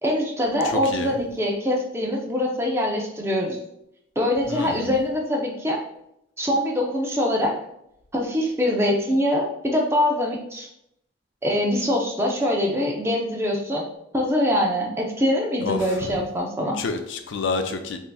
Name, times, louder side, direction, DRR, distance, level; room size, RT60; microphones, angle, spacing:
voice 1, 0.0-3.6 4.2-5.8 6.4-7.6 8.1-10.7 11.4-13.9 14.1-16.8, left 1 dB, 15° right, 0.6 m, -23 dB
voice 2, 0.6-1.1 4.5-4.9 15.6-16.2 16.7-18.0, left 4 dB, 75° left, 0.5 m, -29 dB
5.6 x 2.8 x 2.3 m
head